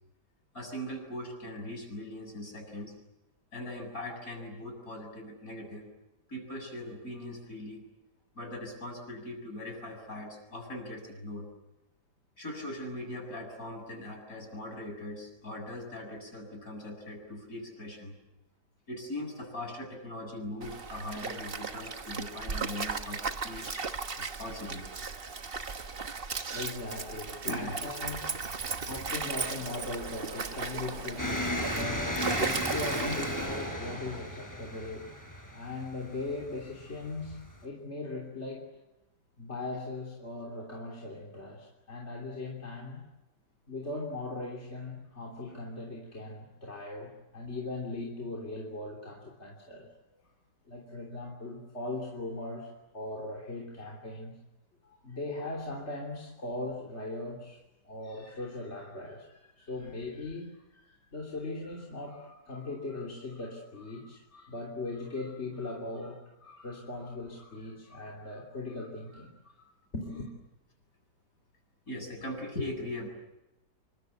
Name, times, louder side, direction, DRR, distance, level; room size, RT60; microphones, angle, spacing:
voice 1, 0.5-2.9 3.5-5.9 6.3-7.8 8.3-11.5 12.4-18.1 18.9-23.9 24.2-24.9 27.5-27.8 71.9-73.1, left 1 dB, 55° left, 2 dB, 8.0 m, -40 dB
Stream, 20.6-33.7, right 4 dB, 35° right, 1.3 m, -36 dB
voice 2, 26.4-35.2 35.5-38.7 39.4-43.0 43.7-49.9 50.7-54.4 54.8-69.3 69.6-70.3, left 2 dB, 40° left, -1 dB, 3.6 m, -39 dB
sound 1, 29.1-34.2, right 2 dB, 55° right, 4.2 m, -46 dB
sound 2, 31.2-37.6, equal, 10° left, 4.5 m, -35 dB
27.0 x 24.5 x 8.2 m, 0.96 s
omnidirectional pair, 1.8 m